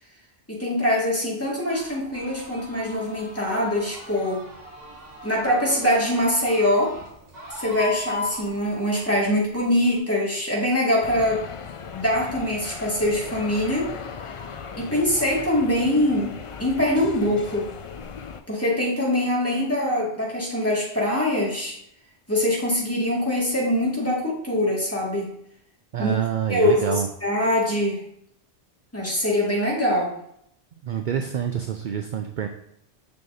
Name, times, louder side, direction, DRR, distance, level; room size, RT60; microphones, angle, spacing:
voice 1, 0.5-4.4 5.2-6.9 7.5-11.5 11.9-13.9 14.8-16.3 16.6-17.7 18.5-21.7 22.3-25.3 26.0-26.1 26.5-28.0 28.9-30.1, left 1 dB, 15° left, -5 dB, 2.0 m, -23 dB
sound 1, 1.7-10.0, left 3 dB, 40° right, 1.9 m, -38 dB
sound 2, 11.0-18.4, left 6 dB, 55° left, 0.3 m, -37 dB
voice 2, 25.9-27.1 30.8-32.5, right 9 dB, 60° right, 6 dB, 0.6 m, -27 dB
6.9 x 6.4 x 2.7 m, 0.72 s
omnidirectional pair, 1.1 m